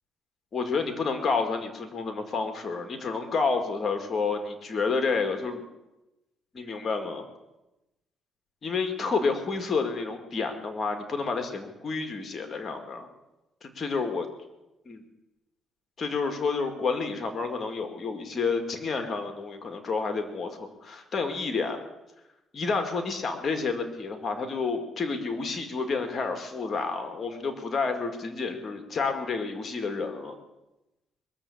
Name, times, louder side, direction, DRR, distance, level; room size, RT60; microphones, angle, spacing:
voice 1, 0.5-5.6 6.5-7.2 8.6-13.1 13.6-14.3 14.9-15.0 16.0-21.8 22.5-30.3, left 4 dB, 45° left, 6 dB, 2.0 m, -29 dB
21.5 x 7.5 x 8.4 m, 0.97 s
cardioid pair, 90°, 0 cm